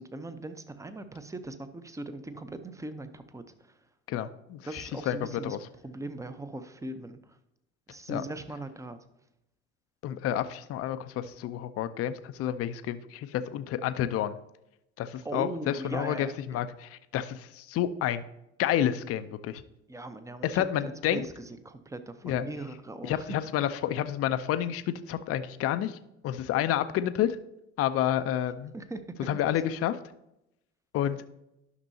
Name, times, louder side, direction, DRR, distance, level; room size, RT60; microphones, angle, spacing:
voice 1, 0.0-3.8 4.6-5.6 5.8-7.4 7.9-9.0 15.2-16.6 19.9-23.4 28.7-29.4, right 2 dB, 10° right, 10 dB, 0.7 m, -40 dB
voice 2, 4.1-5.2 5.4-5.6 8.1-8.2 10.0-14.4 15.0-18.2 18.6-19.6 20.4-21.2 22.2-22.4 23.0-26.0 26.2-27.4 27.8-28.7 29.2-30.0 30.9-31.2, left 11 dB, 40° left, 11 dB, 0.6 m, -29 dB
11.0 x 6.0 x 2.7 m, 0.85 s
hypercardioid pair, 70°, 35 cm